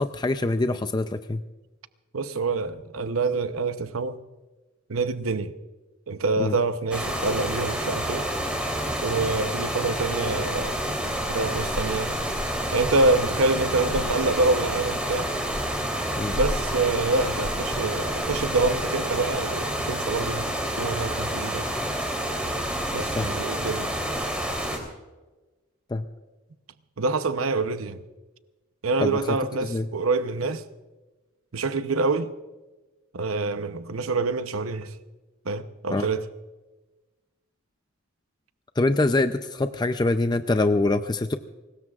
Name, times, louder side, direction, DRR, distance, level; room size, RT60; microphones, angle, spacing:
voice 1, 0.0-1.4 6.4-6.6 16.2-16.4 23.2-23.3 25.9-26.0 29.0-29.2 29.6-29.9 35.9-36.1 38.8-41.3, left 2 dB, 20° left, 0.5 m, -24 dB
voice 2, 2.1-4.2 4.9-5.5 6.1-8.3 9.0-10.7 11.3-12.1 12.7-15.3 16.3-21.7 22.9-23.9 27.0-28.0 28.8-30.6 31.5-32.3 33.1-35.0 35.4-36.2, right 3 dB, 85° right, 0.8 m, -26 dB
sound 1, 6.9-24.8, equal, 5° right, 3.1 m, -28 dB
24.5 x 20.0 x 2.4 m
head